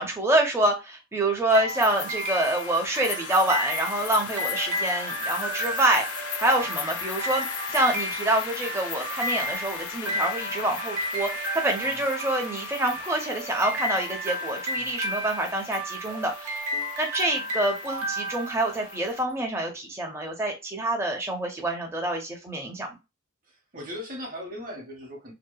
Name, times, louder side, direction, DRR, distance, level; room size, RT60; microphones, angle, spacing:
voice 1, 0.0-22.9, right 1 dB, 10° right, 0.5 m, -26 dB
sound 1, 1.5-19.2, right 1 dB, 80° right, 0.7 m, -33 dB
sound 2, 1.7-19.2, left 7 dB, 90° left, 0.4 m, -37 dB
voice 2, 23.5-25.3, left 1 dB, 40° right, 0.8 m, -39 dB
2.7 x 2.1 x 2.2 m
head